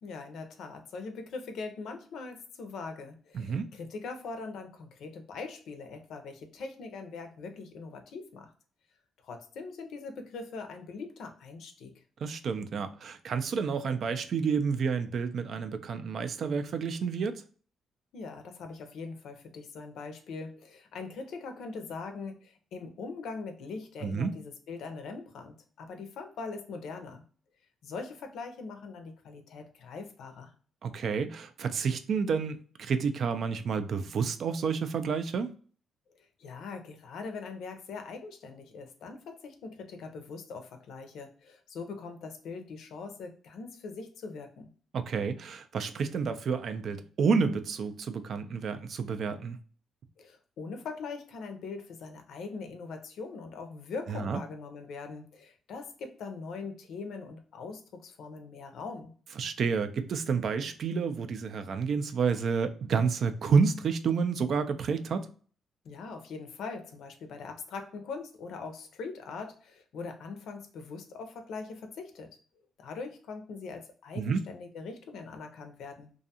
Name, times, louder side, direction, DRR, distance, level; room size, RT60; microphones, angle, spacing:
voice 1, 0.0-8.5 9.2-12.0 18.1-27.2 27.8-30.5 36.2-44.7 50.2-59.1 65.8-72.3 72.8-76.1, left 4 dB, 75° left, 0.5 m, -42 dB
voice 2, 3.3-3.7 12.2-17.4 24.0-24.3 30.8-35.5 44.9-49.6 54.1-54.4 59.4-65.3 74.2-74.4, right 5 dB, 60° right, 0.3 m, -29 dB
2.5 x 2.3 x 2.7 m
cardioid pair, 90°, 0 cm